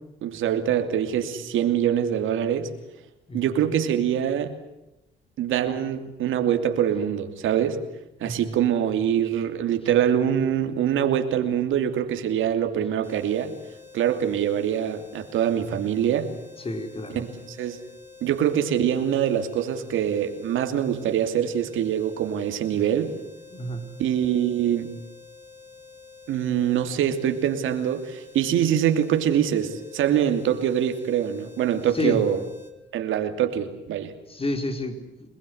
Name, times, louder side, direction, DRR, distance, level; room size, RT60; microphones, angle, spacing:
voice 1, 0.2-2.7 3.3-4.5 5.4-7.8 8.2-13.5 13.9-16.3 17.1-17.8 18.2-23.1 24.0-24.9 26.3-32.4 32.9-34.1, right 9 dB, 80° right, 7 dB, 2.9 m, -24 dB
voice 2, 8.2-8.6 16.6-17.2 23.5-23.8 31.9-32.3 34.3-35.3, left 1 dB, 30° left, 7 dB, 4.5 m, -30 dB
sound 1, 13.0-32.7, left 4 dB, 10° right, 6.3 m, -48 dB
27.0 x 20.5 x 8.0 m, 0.91 s
cardioid pair, 90°, 20 cm